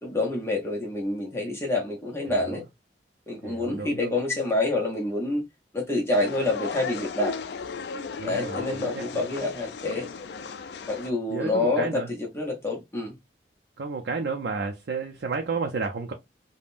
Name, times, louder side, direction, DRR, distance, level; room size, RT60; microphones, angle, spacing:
voice 1, 0.0-2.6 3.3-5.4 5.7-7.3 8.2-10.1 10.9-13.2, left 2 dB, 15° left, 0.6 m, -27 dB
voice 2, 2.3-2.6 3.4-4.2 8.2-9.3 11.3-12.1 13.8-16.1, right 4 dB, 70° right, 0.5 m, -32 dB
sound 1, 6.1-11.1, left 5 dB, 75° left, 0.4 m, -36 dB
3.4 x 2.1 x 2.5 m
head